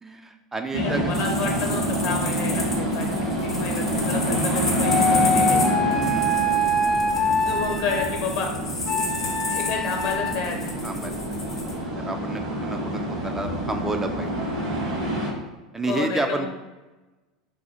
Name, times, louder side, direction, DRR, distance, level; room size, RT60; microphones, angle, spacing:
voice 1, 0.0-1.1 5.9-6.3 10.8-11.2 12.1-14.3 15.7-16.5, right 2 dB, 15° right, 5 dB, 0.3 m, -30 dB
voice 2, 0.7-5.6 7.4-8.5 9.5-10.8 15.8-16.5, left 4 dB, 55° left, 2 dB, 0.9 m, -31 dB
sound 1, 0.7-15.3, right 1 dB, 70° right, 1.3 m, -27 dB
sound 2, 1.1-11.7, left 2 dB, 80° left, 0.7 m, -32 dB
sound 3, 4.8-8.1 8.9-10.3, left 1 dB, 25° left, 0.6 m, -24 dB
3.7 x 2.3 x 4.2 m, 1.2 s
figure-of-eight pair, 80°, 3 cm